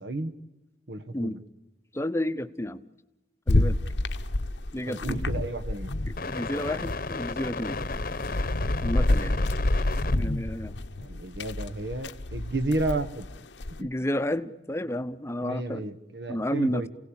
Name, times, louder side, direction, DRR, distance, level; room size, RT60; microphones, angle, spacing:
voice 1, 0.0-0.3 0.9-1.4 4.9-5.9 11.0-13.3 13.8-13.9 15.4-16.9, right 2 dB, 75° right, 12 dB, 1.5 m, -32 dB
voice 2, 1.9-2.8 3.5-3.8 4.7-5.2 6.3-7.8 8.8-9.4 10.2-10.7 13.8-15.8 16.3-16.8, left 1 dB, 15° left, 12 dB, 0.8 m, -31 dB
sound 1, 3.5-6.3 6.6-13.8, left 1 dB, 85° left, 1.0 m, -28 dB
sound 2, 5.8-10.1, left 3 dB, 55° left, 1.0 m, -34 dB
28.5 x 17.5 x 8.8 m, 1.0 s
head